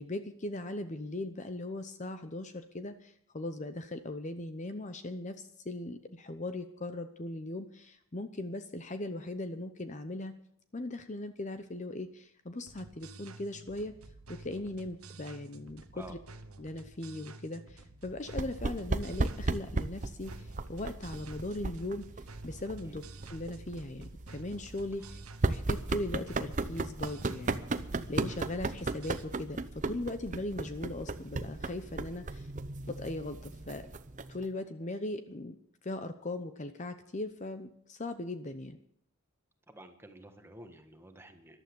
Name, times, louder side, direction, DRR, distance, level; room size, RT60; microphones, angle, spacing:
voice 1, 0.0-10.3 10.7-13.9 14.3-16.2 16.6-22.1 22.4-27.6 28.1-32.5 32.9-33.9 34.3-35.6 35.8-38.8, left 2 dB, 35° left, 9 dB, 0.8 m, -39 dB
sound 1, 12.7-29.2, right 2 dB, 85° right, 1.1 m, -51 dB
sound 2, 18.3-34.5, right 3 dB, 35° right, 0.7 m, -36 dB
voice 2, 39.7-41.6, right 1 dB, 10° right, 5 dB, 1.5 m, -50 dB
14.0 x 12.0 x 7.0 m, 0.67 s
head